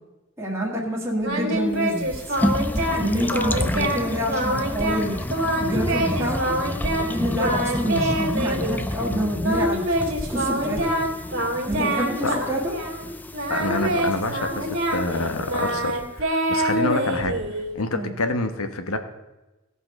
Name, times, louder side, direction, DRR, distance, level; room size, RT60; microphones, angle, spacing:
voice 1, 0.4-2.4 2.9-5.1 5.6-6.4 7.0-9.8 10.3-10.9 11.7-12.7 17.9-18.1, equal, 10° right, -4 dB, 1.5 m, -27 dB
Singing, 1.2-3.0 3.3-4.0 4.3-7.1 7.4-8.8 9.4-13.0 13.3-17.8, right 1 dB, 60° right, 2.1 m, -25 dB
sound 1, 1.8-16.1, left 1 dB, 10° left, 0.3 m, -30 dB
voice 2, 13.5-19.0, left 2 dB, 85° left, 8 dB, 1.2 m, -27 dB
17.0 x 5.6 x 5.3 m, 1.1 s
head